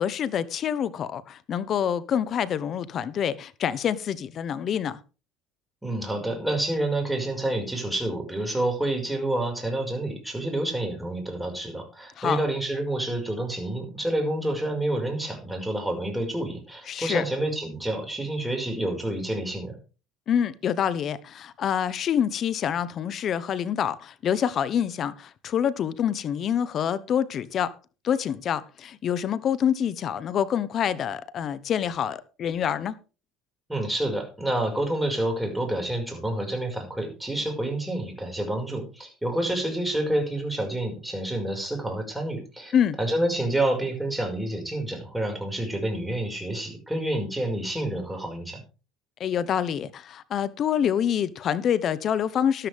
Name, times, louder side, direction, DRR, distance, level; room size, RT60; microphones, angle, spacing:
voice 1, 0.0-5.0 12.2-12.4 16.9-17.2 20.3-27.7 28.0-32.9 42.7-43.0 49.2-52.7, left 9 dB, 45° left, 1.0 m, -26 dB
voice 2, 5.8-19.8 33.7-48.6, right 1 dB, 5° right, 5.5 m, -28 dB
12.5 x 12.5 x 3.6 m
supercardioid pair, 100°, 0 cm